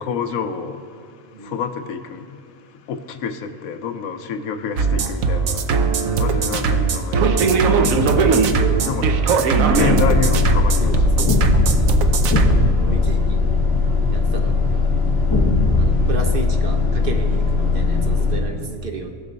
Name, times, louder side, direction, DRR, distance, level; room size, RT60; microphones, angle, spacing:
voice 1, 0.0-8.2 8.8-9.1 9.7-11.1 12.3-12.8 15.9-16.1, left 6 dB, 85° left, 1.1 m, -29 dB
sound 1, 4.8-12.6, right 5 dB, 80° right, 1.1 m, -19 dB
sound 2, 7.8-9.2 11.3-14.2 15.3-17.5, left 1 dB, 20° left, 1.2 m, -23 dB
voice 2, 8.1-8.9 10.8-11.4 12.8-13.4 14.1-14.8 15.8-19.1, right 4 dB, 45° right, 0.9 m, -32 dB
sound 3, 9.7-18.4, left 4 dB, 50° left, 2.2 m, -19 dB
19.0 x 6.4 x 4.0 m
omnidirectional pair, 1.4 m